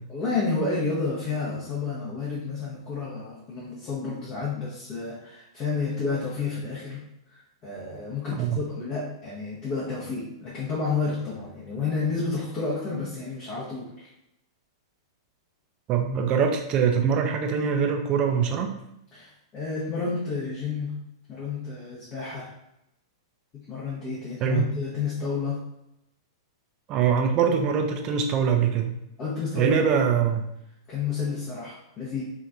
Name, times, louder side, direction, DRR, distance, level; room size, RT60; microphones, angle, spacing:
voice 1, 0.1-7.0 7.3-14.1 19.1-20.9 21.3-22.5 23.5-25.6 29.2-29.9 30.9-32.2, left 4 dB, 30° left, -7 dB, 0.8 m, -30 dB
voice 2, 15.9-18.7 24.4-24.6 26.9-28.9 29.6-30.4, right 7 dB, 30° right, 4 dB, 0.4 m, -23 dB
3.0 x 2.5 x 2.4 m, 0.83 s
figure-of-eight pair, 100°, 2 cm